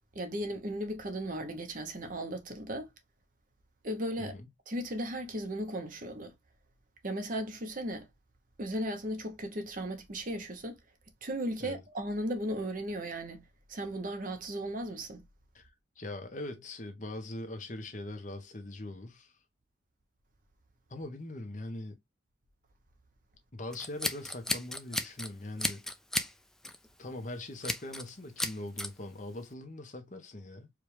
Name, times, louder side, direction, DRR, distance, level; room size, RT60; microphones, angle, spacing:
voice 1, 0.1-2.9 3.8-4.3 4.7-6.3 7.0-8.1 8.6-10.8 11.2-13.4 13.7-15.2, right 1 dB, 45° right, 0.8 m, -36 dB
voice 2, 4.2-4.5 11.6-11.8 15.5-15.7 16.0-19.3 20.9-22.0 23.5-25.8 27.0-30.7, left 1 dB, 40° left, 0.9 m, -41 dB
Scissors, 23.7-25.3 25.6-26.3 26.6-26.9 27.6-28.1 28.4-28.9, left 1 dB, 5° left, 0.3 m, -33 dB
4.7 x 2.4 x 3.2 m
head